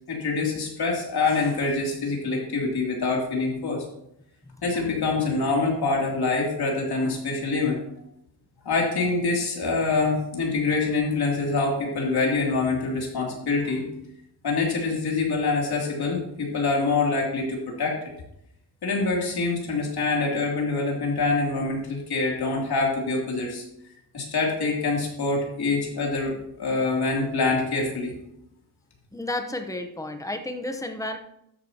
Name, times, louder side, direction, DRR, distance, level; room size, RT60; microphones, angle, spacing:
voice 1, 0.1-3.8 4.6-7.8 8.6-13.9 14.4-18.0 18.8-23.6 24.1-28.1, left 3 dB, 70° left, -1 dB, 3.0 m, -25 dB
voice 2, 29.1-31.2, left 1 dB, 10° left, 6 dB, 0.9 m, -32 dB
13.0 x 10.0 x 2.9 m, 0.79 s
wide cardioid pair, 180°, 40 cm